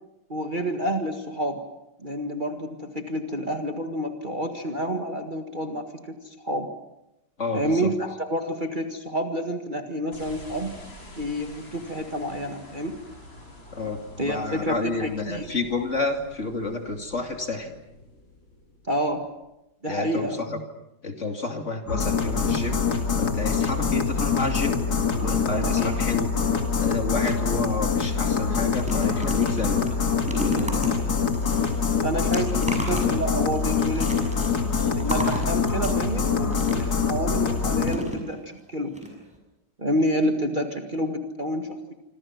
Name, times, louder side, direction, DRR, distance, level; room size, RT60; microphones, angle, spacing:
voice 1, 0.3-1.6 2.0-6.7 7.5-10.7 11.2-13.0 14.2-15.5 18.9-19.2 19.8-20.4 25.6-25.9 32.0-34.2 34.9-38.9 39.8-41.9, equal, 25° right, 4 dB, 1.8 m, -29 dB
voice 2, 7.4-7.9 13.7-17.7 19.9-20.6 21.0-24.8 25.2-26.3 26.8-29.8, left 3 dB, 40° left, 4 dB, 2.8 m, -30 dB
sound 1, 10.1-19.5, left 1 dB, 85° left, 6.8 m, -47 dB
sound 2, 21.9-38.0, left 5 dB, 55° left, 2.8 m, -24 dB
sound 3, 28.4-37.1 37.8-38.6 38.9-39.1 39.3-39.4, equal, 5° right, 6.5 m, -34 dB
26.5 x 26.5 x 6.0 m, 0.91 s
omnidirectional pair, 2.1 m